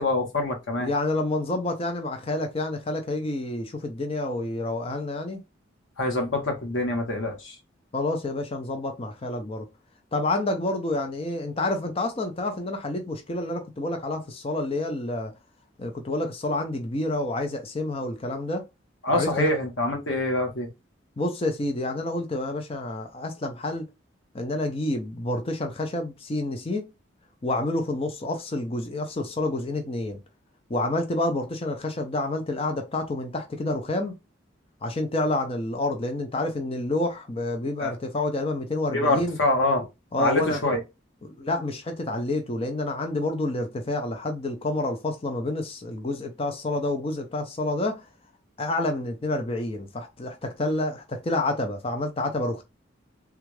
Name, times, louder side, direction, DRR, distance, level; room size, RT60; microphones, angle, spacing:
voice 1, 0.0-0.9 6.0-7.6 19.0-20.7 37.8-37.9 38.9-39.9 40.2-40.8, left 2 dB, 90° left, 1.2 m, -25 dB
voice 2, 0.8-5.4 7.9-9.7 10.1-15.3 15.8-18.6 19.1-19.6 21.2-23.9 24.3-26.9 27.4-30.2 30.7-34.2 34.8-39.4 40.1-40.6 41.2-48.0 48.6-52.6, left 2 dB, 30° left, 0.5 m, -28 dB
3.4 x 2.4 x 3.1 m
head